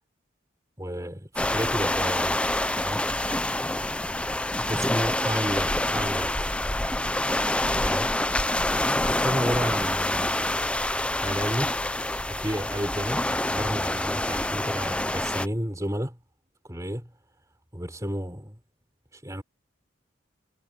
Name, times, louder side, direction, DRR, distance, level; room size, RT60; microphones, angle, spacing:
voice 1, 0.8-2.4 2.8-3.0 4.7-6.5 7.8-8.1 9.1-10.8 11.1-11.8 12.3-16.2 16.7-17.1 17.7-18.6 19.1-19.4, equal, 15° right, 4.3 m, -32 dB
sound 1, 1.4-15.5, left 1 dB, 5° left, 0.6 m, -26 dB
head